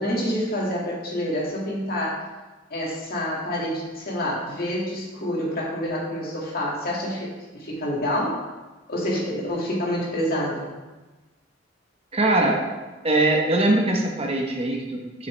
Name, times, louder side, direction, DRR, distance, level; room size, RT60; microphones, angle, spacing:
voice 1, 0.0-2.2 2.7-8.4 8.9-10.7, equal, 50° left, -3 dB, 2.0 m, -27 dB
voice 2, 12.1-12.6 13.0-15.3, right 2 dB, 30° right, 0 dB, 0.9 m, -22 dB
7.6 x 6.8 x 3.2 m, 1.2 s
head